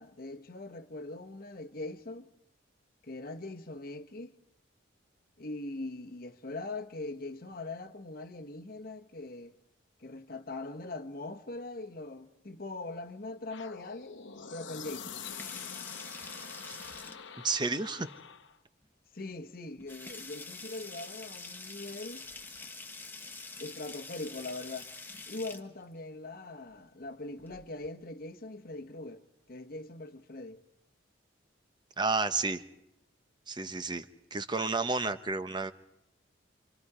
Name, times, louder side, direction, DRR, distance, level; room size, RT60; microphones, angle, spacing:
voice 1, 0.0-2.3 3.0-4.4 5.4-9.5 10.0-14.2 14.5-15.2 19.1-22.3 23.6-24.9 25.3-29.2 29.5-30.6, left 2 dB, 50° left, 1.1 m, -41 dB
sound 1, 13.5-18.6, left 7 dB, 75° left, 1.0 m, -45 dB
sound 2, 15.0-17.4 18.8-18.9 19.3-19.4 19.8-25.6 27.3-27.9, left 3 dB, 10° left, 1.0 m, -46 dB
voice 2, 17.4-18.1 32.0-32.6 33.5-35.7, right 3 dB, 25° right, 0.8 m, -31 dB
29.0 x 25.5 x 4.9 m
head